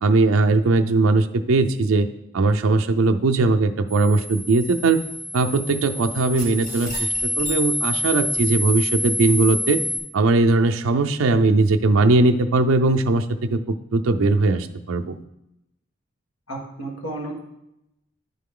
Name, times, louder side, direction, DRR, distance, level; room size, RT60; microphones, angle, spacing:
voice 1, 0.0-2.1 2.3-5.0 5.3-9.8 10.1-13.2 13.5-15.2, right 3 dB, 75° right, 7 dB, 0.5 m, -19 dB
sound 1, 3.9-10.0, equal, 45° left, 2.4 m, -27 dB
voice 2, 16.5-17.4, right 2 dB, 75° left, -1 dB, 1.6 m, -32 dB
10.0 x 3.8 x 3.7 m, 0.85 s
head